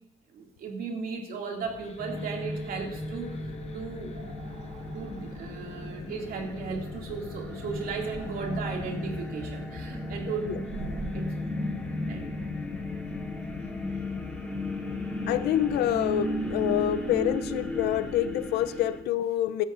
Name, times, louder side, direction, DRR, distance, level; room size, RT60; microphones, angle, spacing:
voice 1, 0.3-4.1 4.9-10.6 11.1-11.3 12.1-12.4, right 5 dB, 60° right, 1 dB, 2.5 m, -36 dB
sound 1, 1.6-19.1, left 6 dB, 40° left, 0.6 m, -43 dB
sound 2, 2.0-19.0, left 1 dB, 5° left, 2.3 m, -35 dB
sound 3, 4.0-11.3, right 4 dB, 75° right, 2.4 m, -46 dB
voice 2, 15.3-19.6, left 12 dB, 75° left, 14 dB, 0.6 m, -27 dB
16.0 x 12.5 x 2.6 m, 0.86 s
cardioid pair, 110°, 17 cm